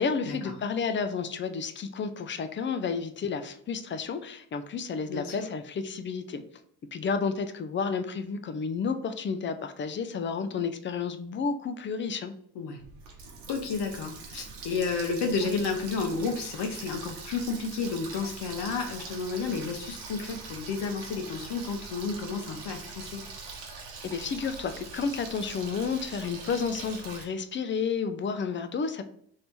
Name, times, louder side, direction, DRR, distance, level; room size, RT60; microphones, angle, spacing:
voice 1, 0.0-6.4 6.9-12.3 24.0-29.0, left 5 dB, 25° left, 9 dB, 0.4 m, -31 dB
voice 2, 5.1-5.5 12.5-12.8 13.5-23.2, left 4 dB, 55° left, 3 dB, 0.9 m, -31 dB
Water tap faucet, 12.8-27.2, right 4 dB, 85° right, 0.9 m, -43 dB
3.2 x 2.7 x 4.4 m, 0.66 s
hypercardioid pair, 55°, 49 cm